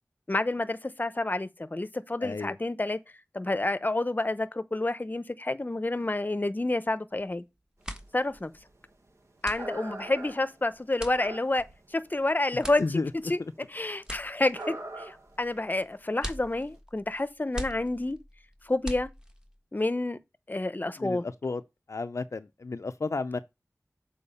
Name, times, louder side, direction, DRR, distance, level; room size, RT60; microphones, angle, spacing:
voice 1, 0.3-3.0 3.3-7.4 8.1-8.5 9.4-12.8 13.3-13.4 13.7-18.2 18.6-19.1 19.7-20.2 20.5-21.2, left 2 dB, 30° left, 0.8 m, -29 dB
voice 2, 2.2-2.6 12.5-13.1 21.0-21.6 21.9-23.4, left 3 dB, 60° left, 0.5 m, -32 dB
sound 1, 7.1-7.4 7.7-19.6, equal, 15° right, 1.5 m, -43 dB
sound 2, 8.0-8.1 8.3-8.9 9.4-11.9 12.1-12.9 13.2-13.3 13.6-13.7 14.5-15.4 15.7-15.8 16.4-16.5, right 2 dB, 60° right, 1.4 m, -42 dB
7.0 x 4.5 x 5.5 m
wide cardioid pair, 60°, 6 cm